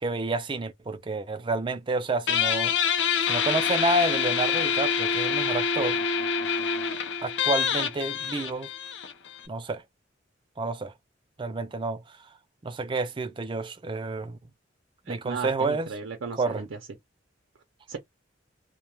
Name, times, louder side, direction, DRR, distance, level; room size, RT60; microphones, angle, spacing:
voice 1, 0.0-2.7 3.3-6.0 7.2-8.7 9.5-9.8 10.6-10.9 11.4-12.2 12.6-14.4 15.1-15.9 16.4-16.6, right 2 dB, 25° right, 0.4 m, -29 dB
Guitar, 2.3-9.5, left 6 dB, 65° left, 0.5 m, -26 dB
voice 2, 15.1-16.8 17.9-18.0, right 5 dB, 80° right, 0.5 m, -35 dB
2.2 x 2.1 x 3.0 m
head